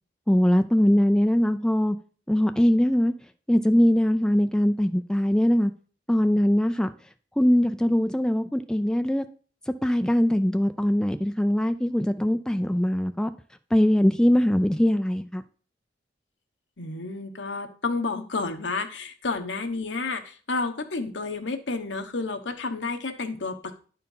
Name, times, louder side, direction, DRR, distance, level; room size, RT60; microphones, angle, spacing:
voice 1, 0.3-2.0 2.3-3.1 3.5-5.7 6.1-6.9 7.4-9.2 9.7-13.3 13.7-15.4, equal, 5° left, 0.4 m, -21 dB
voice 2, 16.8-23.7, left 3 dB, 75° left, 1.1 m, -30 dB
10.5 x 4.5 x 5.4 m
head